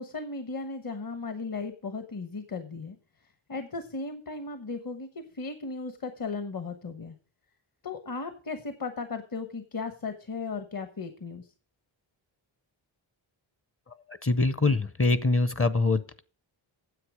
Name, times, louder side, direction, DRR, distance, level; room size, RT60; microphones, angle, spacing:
voice 1, 0.0-3.0 3.5-7.2 7.8-11.5, left 4 dB, 45° left, 9 dB, 1.2 m, -36 dB
voice 2, 14.2-16.2, left 3 dB, 30° left, 15 dB, 0.7 m, -24 dB
9.8 x 7.8 x 4.9 m, 0.40 s
wide cardioid pair, 85°, 48 cm